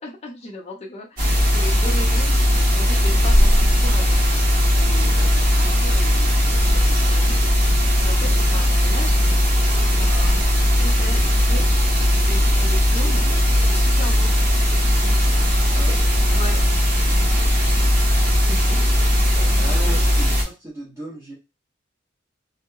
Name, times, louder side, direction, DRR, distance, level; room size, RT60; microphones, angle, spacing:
voice 1, 0.0-7.4 7.7-11.6 12.2-13.3 13.5-14.3 16.3-16.6 18.4-20.2, left 1 dB, 35° left, -1 dB, 0.6 m, -37 dB
sound 1, 1.2-20.4, equal, 50° right, 1.1 m, -18 dB
voice 2, 13.0-13.4 15.7-16.0 19.6-21.3, right 1 dB, 15° right, -7 dB, 0.8 m, -36 dB
2.8 x 2.0 x 2.3 m, 0.25 s
head